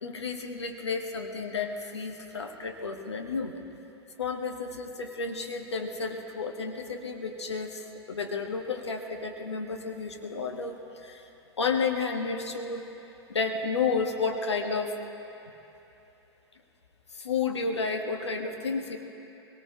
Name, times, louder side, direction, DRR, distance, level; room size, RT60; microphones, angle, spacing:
voice 1, 0.0-3.6 4.2-11.3 11.6-12.9 13.3-15.0 17.1-19.0, left 4 dB, 80° left, 4 dB, 1.2 m, -31 dB
23.0 x 18.5 x 2.8 m, 2.9 s
figure-of-eight pair, 90°, 14 cm